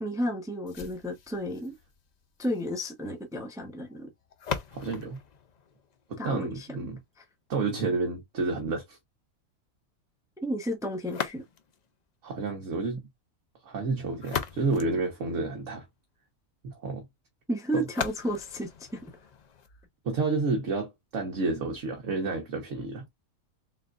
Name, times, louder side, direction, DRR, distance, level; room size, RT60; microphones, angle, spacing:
voice 1, 0.0-1.7 2.4-4.1 6.2-6.9 10.4-11.4 17.5-19.1, equal, 5° right, 0.6 m, -32 dB
sound 1, 0.7-6.6 11.0-11.9 13.9-15.9 17.9-19.9, left 7 dB, 80° left, 0.3 m, -39 dB
voice 2, 4.7-5.2 6.1-7.0 7.5-9.0 12.2-13.0 13.6-15.8 16.6-17.0 17.7-17.8 20.0-23.0, right 3 dB, 60° right, 1.3 m, -30 dB
4.1 x 3.7 x 2.4 m
omnidirectional pair, 1.6 m